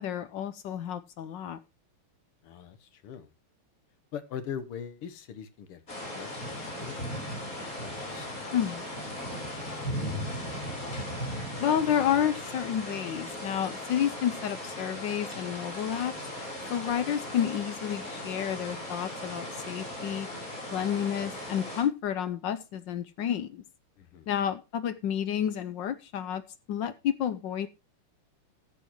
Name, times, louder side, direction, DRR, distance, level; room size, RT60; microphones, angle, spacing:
voice 1, 0.0-1.6 8.5-8.8 11.6-16.1 16.7-20.3 20.7-23.6 24.3-26.4 26.7-27.7, left 9 dB, 65° left, 13 dB, 1.2 m, -30 dB
voice 2, 2.4-3.3 4.1-7.0 7.3-8.5 9.2-9.3 9.6-10.1 24.0-24.3, left 8 dB, 85° left, 11 dB, 2.1 m, -42 dB
sound 1, 5.9-21.8, left 1 dB, 40° left, 4.4 m, -37 dB
14.5 x 8.5 x 3.0 m, 0.25 s
omnidirectional pair, 2.4 m